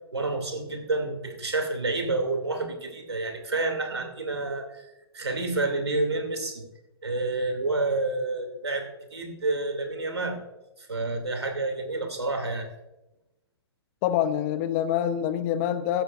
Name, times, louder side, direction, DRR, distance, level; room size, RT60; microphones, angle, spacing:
voice 1, 0.1-6.6 7.0-10.4 10.8-12.7, right 2 dB, 85° right, 4 dB, 2.7 m, -29 dB
voice 2, 14.0-16.0, left 10 dB, 35° left, 13 dB, 0.8 m, -26 dB
15.0 x 13.0 x 2.5 m, 0.94 s
figure-of-eight pair, 120°, 13 cm